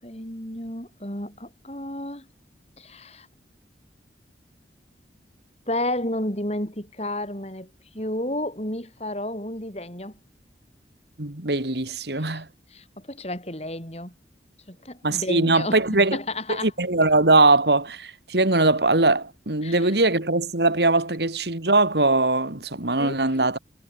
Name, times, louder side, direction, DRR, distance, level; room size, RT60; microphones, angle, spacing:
voice 1, 0.0-2.3 2.8-3.3 5.7-7.7 7.9-10.1 12.2-12.3 12.7-14.1 14.7-15.8 16.1-16.7 19.6-19.9 23.0-23.2, left 1 dB, 35° left, 7.7 m, -31 dB
voice 2, 11.2-12.5 15.0-16.2 16.6-23.6, right 2 dB, 75° right, 2.7 m, -21 dB
head